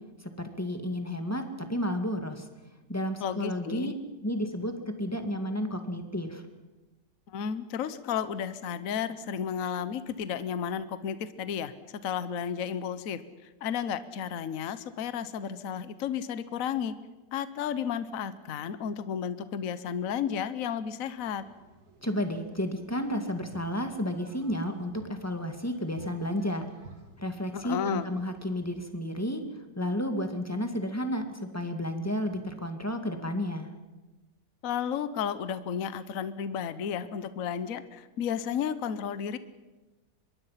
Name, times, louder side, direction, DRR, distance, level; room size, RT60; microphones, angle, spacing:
voice 1, 0.4-1.4 1.7-2.5 2.9-3.9 4.2-4.7 5.0-6.4 22.0-26.7 27.2-29.4 29.8-33.7, equal, 10° left, 6 dB, 1.9 m, -32 dB
voice 2, 3.2-3.9 7.3-13.2 13.6-16.9 17.3-21.4 27.5-28.1 34.6-39.4, left 8 dB, 55° left, 13 dB, 1.2 m, -33 dB
sound 1, 21.1-28.9, right 3 dB, 60° right, 2.9 m, -55 dB
24.5 x 22.0 x 5.8 m, 1.1 s
omnidirectional pair, 1.9 m